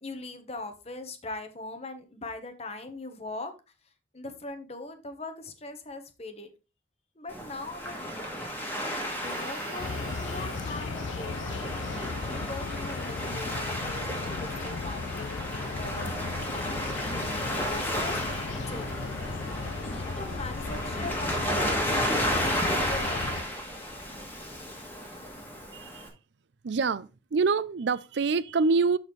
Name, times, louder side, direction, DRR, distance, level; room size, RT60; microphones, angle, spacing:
voice 1, 0.0-3.5 4.1-6.5 7.2-8.0 9.1-11.7 12.3-16.9 17.5-19.1 19.8-23.4, left 2 dB, 35° left, 1.2 m, -41 dB
Waves surf, 7.3-26.1, equal, 10° left, 2.0 m, -33 dB
Harmonica, 9.0-12.8, right 3 dB, 45° right, 2.8 m, -50 dB
sound 1, 9.8-23.4, left 4 dB, 80° left, 0.5 m, -36 dB
voice 2, 25.7-26.1 26.6-29.0, right 4 dB, 65° right, 0.5 m, -26 dB
12.0 x 4.3 x 3.2 m
head